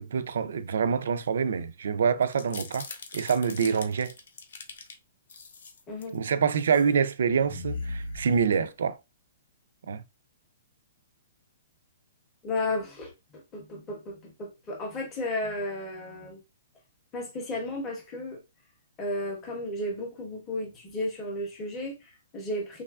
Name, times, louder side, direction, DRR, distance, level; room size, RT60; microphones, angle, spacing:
voice 1, 0.0-2.9 3.1-4.1 6.1-9.0 9.9-10.0, right 6 dB, 70° right, 0.3 m, -26 dB
sound 1, 2.2-4.9 5.3-6.1 6.6-6.9 7.2-8.9, left 3 dB, 70° left, 0.6 m, -39 dB
voice 2, 12.4-16.4 17.1-18.4 19.0-22.8, left 1 dB, 15° left, 0.6 m, -34 dB
3.1 x 2.3 x 2.2 m
hypercardioid pair, 180°, 0 cm